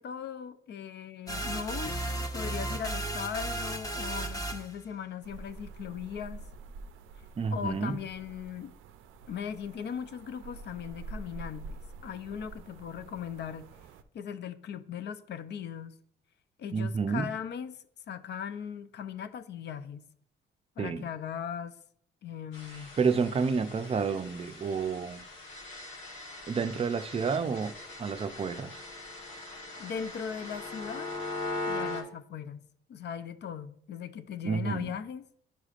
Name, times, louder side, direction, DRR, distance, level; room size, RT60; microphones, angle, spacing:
voice 1, 0.0-1.9 2.3-6.4 7.5-8.7 9.3-11.8 12.0-13.7 14.1-16.0 16.6-20.1 20.8-21.8 22.2-23.0 29.8-31.1 31.7-32.6 32.9-35.2, left 8 dB, 60° left, 0.5 m, -39 dB
sound 1, 1.3-4.8, right 1 dB, 20° left, 0.9 m, -34 dB
sound 2, 5.2-14.0, right 3 dB, 90° right, 0.5 m, -47 dB
voice 2, 7.4-8.0 16.7-17.3 20.8-21.1 22.7-25.3 26.5-28.8 34.4-34.9, right 5 dB, 30° right, 0.4 m, -30 dB
sound 3, 22.5-32.0, left 2 dB, 85° left, 1.4 m, -40 dB
10.5 x 4.9 x 2.5 m
cardioid pair, 90°, 20 cm